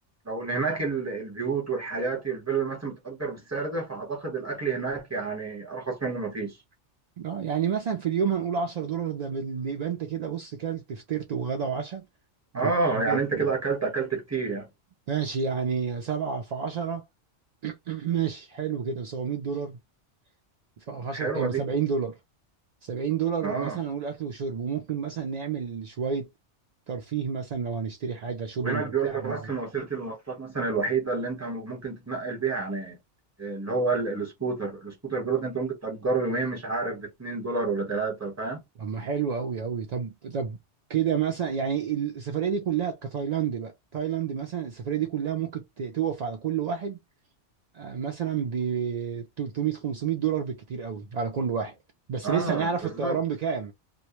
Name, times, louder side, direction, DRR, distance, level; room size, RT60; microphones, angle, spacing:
voice 1, 0.2-6.6 12.5-14.7 21.1-21.6 23.4-23.8 28.6-32.9 33.4-38.6 52.2-53.2, right 4 dB, 15° right, 0.9 m, -29 dB
voice 2, 7.2-12.1 12.5-13.5 15.1-17.0 17.6-19.8 20.8-22.2 22.8-26.3 26.9-29.5 38.8-40.6 40.9-47.0 47.7-51.8 52.1-53.7, right 7 dB, 65° right, 0.4 m, -30 dB
2.2 x 2.1 x 2.9 m
omnidirectional pair, 1.2 m